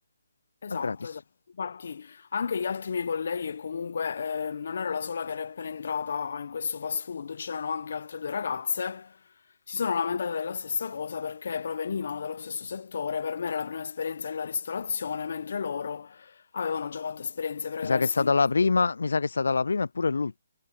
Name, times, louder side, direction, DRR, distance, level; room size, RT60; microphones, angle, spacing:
voice 1, 0.6-1.2 1.5-9.2 9.7-18.3, left 6 dB, 60° left, 1.2 m, -32 dB
voice 2, 17.8-20.4, left 4 dB, 75° left, 0.3 m, -25 dB
figure-of-eight pair, 150°, 0 cm